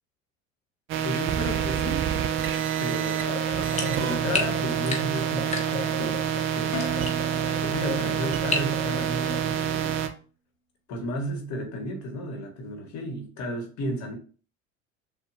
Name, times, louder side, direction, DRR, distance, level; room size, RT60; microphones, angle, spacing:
sound 1, 0.9-10.1, right 9 dB, 30° right, 0.5 m, -27 dB
voice 1, 1.0-2.0 2.8-6.8 7.6-9.9 10.9-14.2, equal, 45° left, 1.1 m, -33 dB
sound 2, 3.3-9.4, left 3 dB, 15° left, 1.0 m, -34 dB
Dishes pots and pans, 6.7-8.8, left 1 dB, 80° left, 0.9 m, -38 dB
6.6 x 2.2 x 2.6 m
figure-of-eight pair, 70°, 40 cm